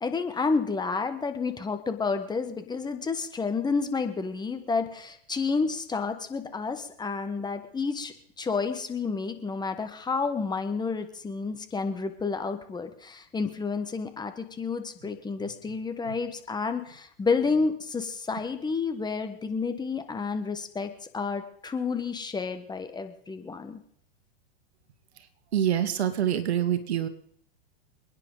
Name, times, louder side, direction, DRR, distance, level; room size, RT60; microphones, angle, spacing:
voice 1, 0.0-23.8, left 4 dB, 15° left, 8 dB, 1.3 m, -30 dB
voice 2, 25.5-27.1, right 10 dB, 80° right, 10 dB, 1.7 m, -26 dB
28.0 x 9.8 x 3.9 m, 0.65 s
hypercardioid pair, 120°, 32 cm